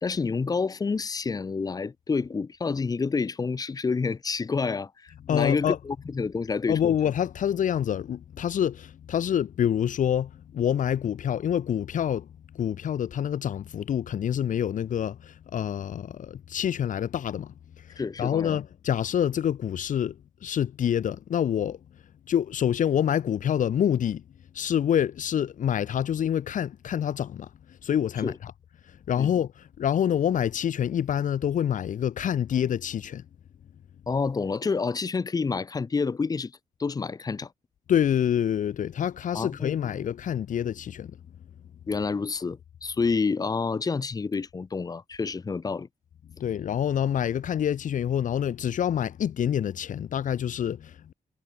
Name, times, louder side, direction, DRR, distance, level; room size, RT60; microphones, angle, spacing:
voice 1, 0.0-6.9 18.0-18.6 28.2-28.3 29.2-29.3 34.1-36.5 36.8-37.5 39.3-40.0 41.9-45.9, left 4 dB, 25° left, 2.3 m, -28 dB
voice 2, 5.3-5.8 6.7-12.3 12.5-21.8 22.3-24.2 24.5-28.5 28.9-33.2 37.9-41.1 46.4-51.1, left 9 dB, 70° left, 2.3 m, -27 dB
wide cardioid pair, 175°, 14 cm